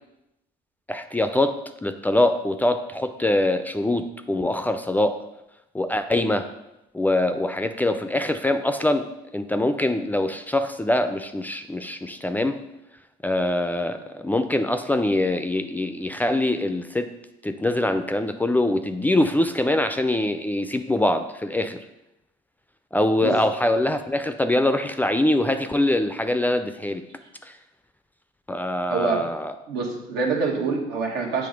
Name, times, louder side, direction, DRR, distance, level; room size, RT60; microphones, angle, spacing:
voice 1, 0.9-5.2 5.7-6.5 6.9-9.1 9.3-12.6 13.2-17.1 17.4-21.8 22.9-27.0 27.5-27.6 28.5-29.5, left 1 dB, 10° left, 9 dB, 0.3 m, -23 dB
voice 2, 28.9-29.3 29.7-31.5, right 4 dB, 90° right, 1 dB, 1.3 m, -25 dB
7.7 x 3.2 x 5.1 m, 0.89 s
cardioid pair, 110°, 17 cm